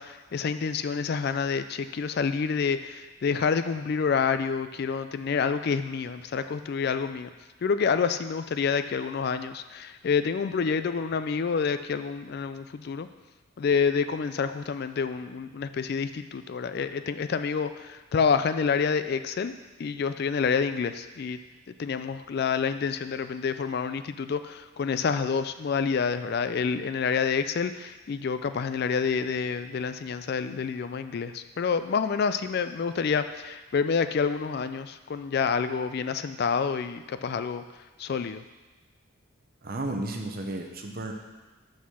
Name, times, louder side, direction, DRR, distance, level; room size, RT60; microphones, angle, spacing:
voice 1, 0.0-7.3 7.6-13.1 13.6-19.5 19.8-21.4 21.8-37.6 38.0-38.4, left 5 dB, 45° left, 11 dB, 0.3 m, -28 dB
voice 2, 39.6-41.1, right 2 dB, 45° right, 3 dB, 0.8 m, -33 dB
6.3 x 5.8 x 6.2 m, 1.2 s
head